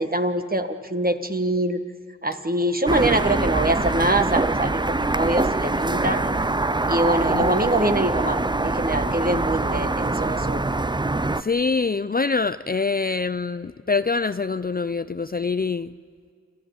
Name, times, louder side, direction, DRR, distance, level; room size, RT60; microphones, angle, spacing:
voice 1, 0.0-1.8 2.2-6.2 6.9-10.6, right 1 dB, 30° right, 7 dB, 1.6 m, -24 dB
sound 1, 2.9-11.4, right 2 dB, 15° right, 0.6 m, -24 dB
voice 2, 7.3-7.7 11.4-15.9, left 4 dB, 30° left, 13 dB, 0.5 m, -25 dB
28.5 x 13.0 x 9.5 m, 2.1 s
cardioid pair, 45°, 29 cm